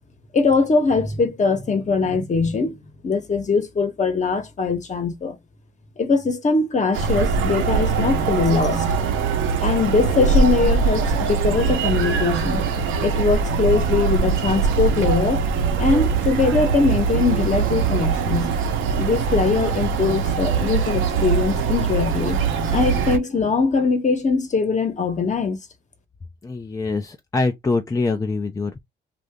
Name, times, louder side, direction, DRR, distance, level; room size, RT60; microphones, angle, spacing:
voice 1, 0.3-2.8 3.0-5.4 6.0-8.8 9.6-12.6 13.0-15.4 15.8-18.5 19.0-22.4 22.7-25.6, left 4 dB, 35° left, 1.0 m, -21 dB
sound 1, 6.9-23.2, right 5 dB, 85° right, 0.8 m, -22 dB
voice 2, 26.4-28.8, left 3 dB, 15° left, 0.5 m, -24 dB
2.8 x 2.5 x 3.4 m
cardioid pair, 90°, 20 cm